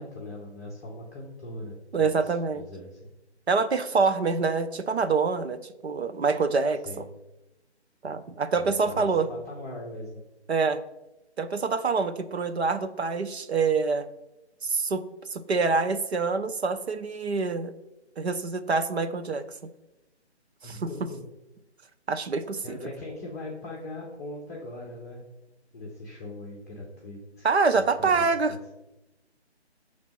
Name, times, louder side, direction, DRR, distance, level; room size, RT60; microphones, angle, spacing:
voice 1, 0.0-3.0 6.8-7.1 8.6-10.2 20.6-21.2 22.6-25.2 25.7-27.5 27.7-28.6, left 1 dB, 15° left, -4 dB, 0.8 m, -40 dB
voice 2, 1.9-2.6 3.5-6.8 8.0-9.3 10.5-10.8 11.4-14.1 14.6-15.0 15.3-17.7 18.2-19.4 20.6-21.1 22.1-22.8 27.4-28.5, right 4 dB, 65° right, 9 dB, 0.7 m, -26 dB
7.0 x 3.3 x 5.3 m, 0.96 s
figure-of-eight pair, 155°, 34 cm